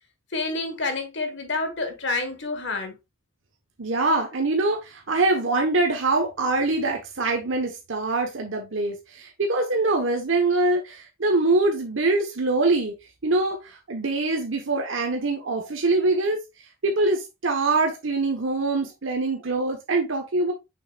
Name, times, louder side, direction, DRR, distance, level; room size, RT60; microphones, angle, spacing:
voice 1, 0.3-3.0, left 3 dB, 60° left, 1.4 m, -28 dB
voice 2, 3.8-12.9 13.2-16.4 16.8-20.5, right 2 dB, 75° right, 1.1 m, -24 dB
6.4 x 6.3 x 2.4 m
head